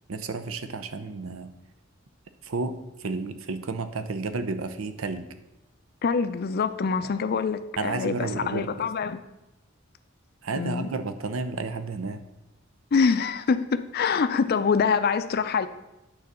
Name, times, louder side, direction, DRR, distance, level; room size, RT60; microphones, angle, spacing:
voice 1, 0.1-1.5 2.4-5.3 7.0-7.1 7.8-8.9 10.4-12.2, right 3 dB, 90° right, 9 dB, 0.7 m, -32 dB
voice 2, 6.0-9.2 10.6-10.9 12.9-15.7, left 5 dB, 50° left, 11 dB, 0.4 m, -25 dB
9.1 x 3.9 x 6.7 m, 0.95 s
head